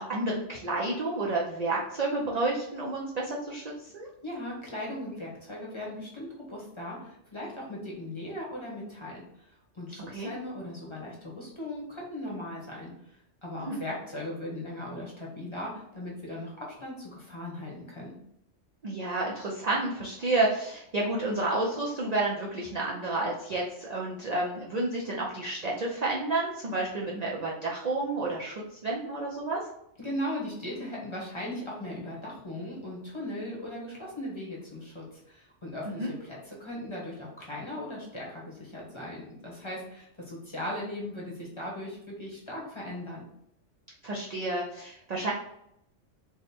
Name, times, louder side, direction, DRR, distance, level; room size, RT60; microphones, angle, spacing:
voice 1, 0.0-4.1 10.1-10.3 13.7-13.8 18.8-28.5 28.8-29.6 35.9-36.1 44.0-45.3, right 2 dB, 50° right, -3 dB, 0.5 m, -30 dB
voice 2, 4.2-13.2 13.4-18.1 30.0-43.3, left 1 dB, 25° left, -4 dB, 0.8 m, -38 dB
3.5 x 2.1 x 4.2 m, 0.76 s
omnidirectional pair, 1.3 m